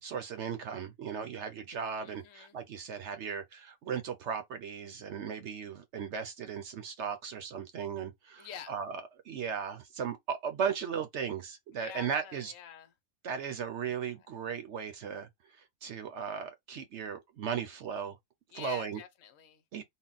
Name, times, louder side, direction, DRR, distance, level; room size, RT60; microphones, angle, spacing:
voice 1, 0.0-9.0 9.3-12.5 13.2-15.3 15.8-18.2 18.5-19.0 19.7-19.8, right 7 dB, 60° right, 0.9 m, -36 dB
voice 2, 2.0-2.6 8.4-8.7 11.7-12.9 14.1-14.3 18.5-19.6, left 9 dB, 70° left, 1.1 m, -47 dB
3.7 x 2.2 x 3.9 m
omnidirectional pair, 1.5 m